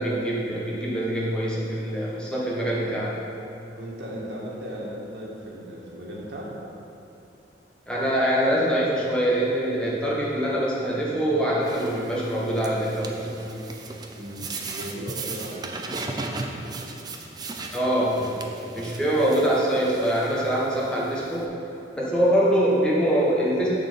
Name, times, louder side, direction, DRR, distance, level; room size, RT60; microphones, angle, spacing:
voice 1, 0.0-3.1 7.9-13.6 17.7-18.2 18.7-21.5 21.9-23.7, right 1 dB, 5° left, -6 dB, 1.4 m, -24 dB
voice 2, 3.7-6.5 14.2-16.8 18.1-18.7, equal, 75° right, -5 dB, 1.7 m, -37 dB
sound 1, 11.6-21.4, right 3 dB, 25° right, 0.5 m, -37 dB
7.3 x 4.4 x 6.9 m, 2.8 s
head